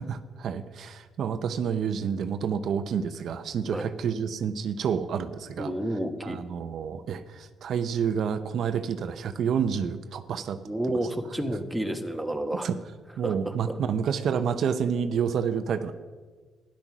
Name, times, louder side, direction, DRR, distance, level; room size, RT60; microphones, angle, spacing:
voice 1, 0.0-5.7 6.2-11.0 12.6-12.8 13.2-15.9, right 7 dB, 65° right, 9 dB, 0.7 m, -29 dB
voice 2, 5.6-6.4 10.7-12.7 13.2-13.8, right 1 dB, 5° right, 5 dB, 1.3 m, -30 dB
12.5 x 10.5 x 6.1 m, 1.4 s
cardioid pair, 90°, 0 cm